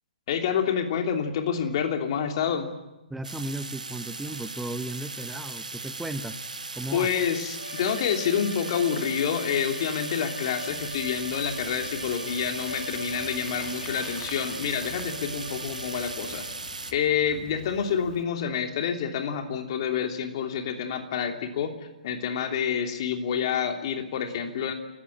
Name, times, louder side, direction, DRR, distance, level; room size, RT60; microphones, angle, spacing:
voice 1, 0.3-2.7 6.9-16.4 16.9-21.7 22.0-24.7, left 7 dB, 40° left, 5 dB, 3.0 m, -28 dB
voice 2, 3.1-6.4 6.8-7.1, right 2 dB, 5° right, 12 dB, 1.1 m, -35 dB
sound 1, 3.2-16.9, right 3 dB, 75° right, 1.6 m, -38 dB
sound 2, 7.5-16.7, left 1 dB, 80° left, 5.2 m, -41 dB
Bicycle, 10.7-18.2, left 7 dB, 20° left, 1.9 m, -48 dB
29.0 x 15.5 x 10.0 m, 0.99 s
figure-of-eight pair, 125°, 4 cm